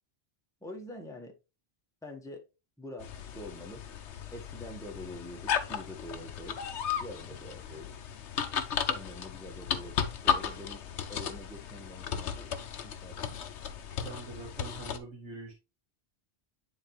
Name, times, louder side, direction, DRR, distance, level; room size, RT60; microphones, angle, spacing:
voice 1, 0.6-1.3 2.0-2.5 2.8-3.8 4.3-6.6 7.0-7.9 8.9-10.8 11.1-12.5 12.8-13.4, left 1 dB, 5° left, 1.2 m, -45 dB
sound 1, 3.0-15.0, left 8 dB, 80° left, 1.1 m, -35 dB
voice 2, 14.0-15.5, right 3 dB, 75° right, 2.2 m, -43 dB
9.7 x 4.0 x 3.1 m
omnidirectional pair, 1.2 m